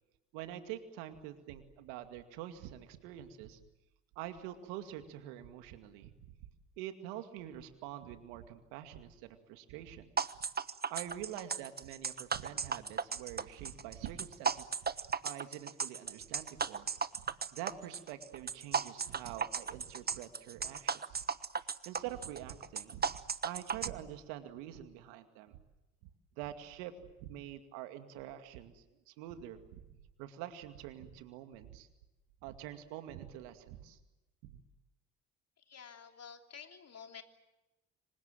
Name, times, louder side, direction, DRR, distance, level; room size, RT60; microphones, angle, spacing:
voice 1, 0.3-3.6 4.2-6.1 6.8-10.1 10.9-14.9 15.2-17.2 17.5-21.2 21.6-23.1 23.4-25.6 26.4-26.9 27.2-29.8 30.2-31.9 32.4-34.0 34.5-34.6, right 12 dB, 80° right, 8 dB, 2.4 m, -46 dB
sound 1, 10.2-23.9, right 6 dB, 25° right, 1.2 m, -35 dB
voice 2, 35.6-37.2, left 7 dB, 45° left, 5 dB, 3.4 m, -51 dB
26.5 x 25.0 x 7.7 m, 1.0 s
hypercardioid pair, 55°, 36 cm